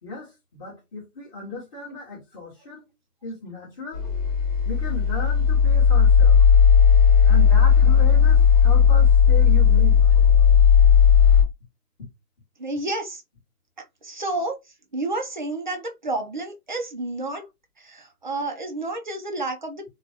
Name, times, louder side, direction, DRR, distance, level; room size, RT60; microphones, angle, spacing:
voice 1, 0.0-2.9 3.2-4.1 4.6-6.4 7.2-10.0, left 2 dB, 20° left, 1.5 m, -35 dB
sound 1, 3.9-11.4, left 7 dB, 55° left, 1.4 m, -15 dB
voice 2, 12.6-13.2 14.0-14.6 14.9-17.5 17.8-19.8, right 2 dB, 35° right, 0.4 m, -30 dB
3.2 x 2.3 x 2.7 m
hypercardioid pair, 155°, 46 cm